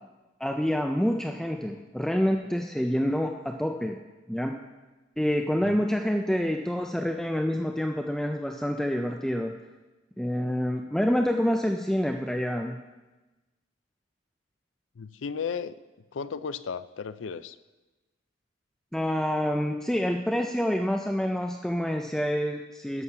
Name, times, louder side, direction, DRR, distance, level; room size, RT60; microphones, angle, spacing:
voice 1, 0.4-4.0 4.3-4.6 5.2-9.5 10.2-12.8 18.9-23.0, equal, 5° left, 4 dB, 0.4 m, -27 dB
voice 2, 15.0-15.7 16.1-17.6, left 6 dB, 85° left, 14 dB, 0.5 m, -34 dB
11.0 x 6.4 x 6.9 m, 1.1 s
head